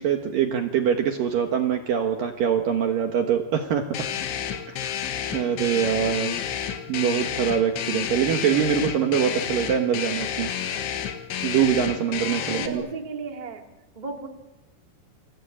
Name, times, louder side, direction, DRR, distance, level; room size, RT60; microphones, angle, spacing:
voice 1, 0.0-3.9 4.7-4.9 5.3-6.4 6.9-10.5 11.4-12.8, right 8 dB, 65° right, 5 dB, 2.5 m, -24 dB
sound 1, 3.9-12.7, left 9 dB, 85° left, 4.3 m, -30 dB
voice 2, 12.5-13.6 13.9-14.3, right 4 dB, 15° right, 3 dB, 1.6 m, -35 dB
29.0 x 23.0 x 8.7 m, 1.0 s
omnidirectional pair, 5.3 m